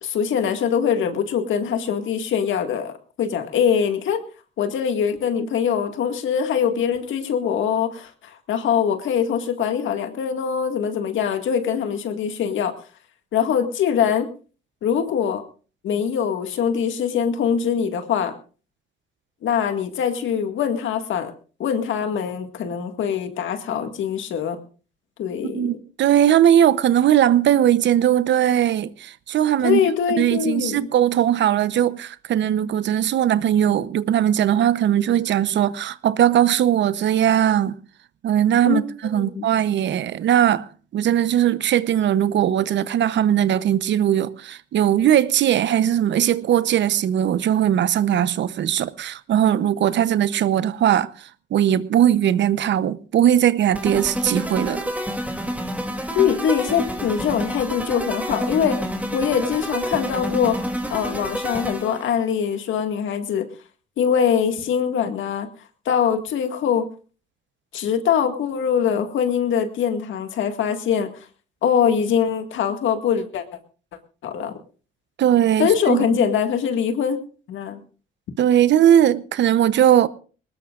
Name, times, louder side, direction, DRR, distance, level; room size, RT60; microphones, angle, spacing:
voice 1, 0.0-4.2 4.6-12.7 13.3-14.3 14.8-15.4 15.8-18.3 19.4-21.3 21.6-24.6 25.2-25.8 29.6-30.9 38.6-38.9 39.2-39.4 56.2-60.6 60.9-63.5 64.0-65.5 65.9-66.9 67.7-71.3 71.6-73.4 74.2-74.5 75.6-77.2 77.5-77.8, left 8 dB, 75° left, 2.0 m, -23 dB
voice 2, 25.4-29.8 30.1-37.8 38.2-54.8 75.2-76.0 78.4-80.1, right 10 dB, 65° right, 0.8 m, -19 dB
sound 1, 53.7-62.1, equal, 5° right, 2.7 m, -28 dB
21.5 x 19.5 x 2.5 m
cardioid pair, 90°, 20 cm